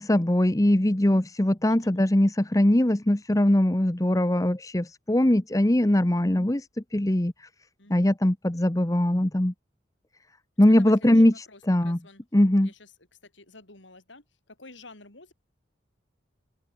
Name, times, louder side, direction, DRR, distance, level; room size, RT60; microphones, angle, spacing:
voice 1, 0.0-6.6 6.9-7.3 7.9-9.5 10.6-11.3 11.7-12.0 12.3-12.7, left 1 dB, 20° left, 0.9 m, -21 dB
voice 2, 1.7-2.0 7.8-8.1 10.7-12.2 12.6-12.9 13.2-15.3, left 3 dB, 80° left, 6.8 m, -50 dB
open air
head